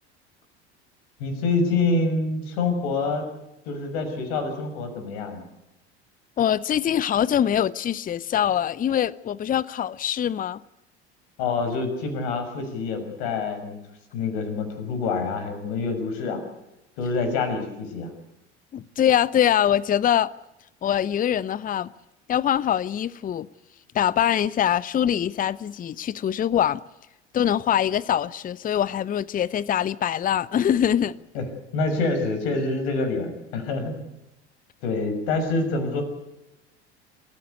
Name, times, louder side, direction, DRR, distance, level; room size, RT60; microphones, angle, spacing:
voice 1, 1.2-3.3 3.7-5.4 11.4-13.8 14.1-16.4 17.0-18.1 31.3-31.4 31.7-34.0 34.8-36.0, left 3 dB, 60° left, 6.2 m, -26 dB
voice 2, 6.4-10.6 18.7-20.3 20.8-21.9 22.3-23.5 23.9-26.8 27.3-31.1, left 10 dB, 25° left, 0.7 m, -23 dB
27.5 x 15.5 x 8.2 m
figure-of-eight pair, 70°, 34 cm